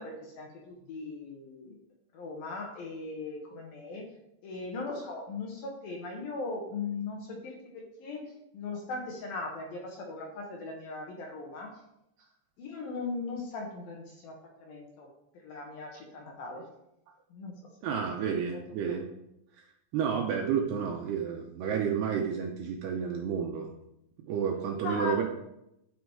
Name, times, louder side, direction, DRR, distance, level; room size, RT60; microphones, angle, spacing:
voice 1, 0.0-1.7 2.1-4.1 4.4-11.7 12.6-14.3 14.6-15.1 15.4-16.6 17.3-17.6 18.2-19.0 24.8-25.2, left 3 dB, 65° left, 0 dB, 2.6 m, -39 dB
voice 2, 17.8-19.1 19.9-23.7 24.2-25.2, right 7 dB, 75° right, 2 dB, 2.5 m, -30 dB
11.0 x 6.2 x 4.7 m, 0.82 s
omnidirectional pair, 5.5 m